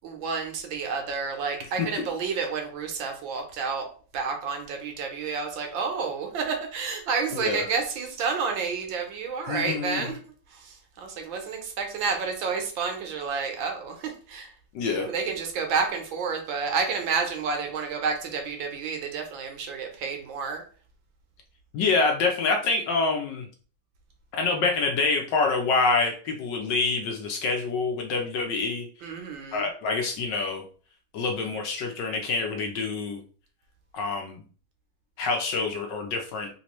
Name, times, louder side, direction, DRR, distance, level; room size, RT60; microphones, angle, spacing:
voice 1, 0.0-3.8 4.1-10.2 10.5-14.5 15.0-20.6 29.0-29.7, right 5 dB, 75° right, 3 dB, 1.4 m, -30 dB
voice 2, 7.3-7.6 9.5-10.1 14.7-15.1 21.7-23.5 24.3-28.9 29.5-30.6 31.1-33.2 33.9-34.4 35.2-36.5, left 4 dB, 70° left, 2 dB, 1.1 m, -26 dB
3.5 x 2.8 x 3.0 m, 0.42 s
omnidirectional pair, 2.3 m